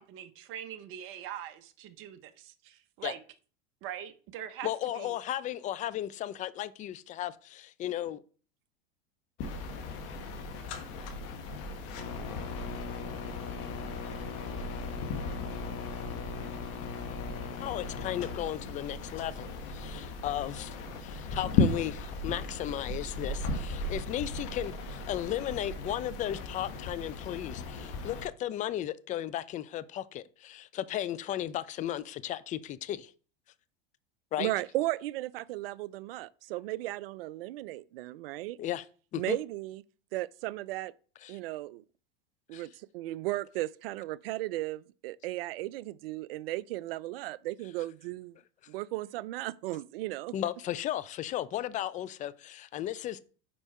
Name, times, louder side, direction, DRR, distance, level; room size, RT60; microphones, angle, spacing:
voice 1, 0.0-3.2 3.8-4.7 4.9-5.1, right 10 dB, 45° right, 0.8 m, -42 dB
voice 2, 4.6-8.2 17.6-33.1 34.3-34.5 38.6-38.9 39.1-39.4 41.2-41.4 42.5-42.6 50.3-53.2, left 12 dB, 25° left, 0.4 m, -35 dB
sound 1, 9.4-28.3, left 3 dB, 50° left, 1.3 m, -36 dB
voice 3, 34.4-38.6 39.2-39.8 40.1-40.9 41.3-41.8 42.5-48.4 48.7-50.3, right 17 dB, 75° right, 0.4 m, -35 dB
5.4 x 4.6 x 4.2 m
hypercardioid pair, 110°, 29 cm